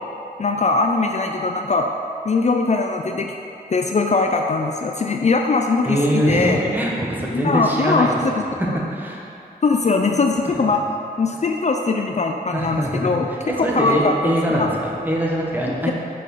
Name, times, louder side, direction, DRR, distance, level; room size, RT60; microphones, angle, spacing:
voice 1, 0.4-1.9 2.2-3.3 3.7-6.6 7.3-8.1 9.6-10.8 11.2-13.3 13.6-14.3 14.6-14.7, left 3 dB, 45° left, 3 dB, 0.5 m, -20 dB
voice 2, 5.8-8.2 8.5-9.2 12.5-15.9, equal, 10° right, -3 dB, 1.5 m, -23 dB
6.7 x 5.1 x 5.5 m, 2.7 s
cardioid pair, 55°, 16 cm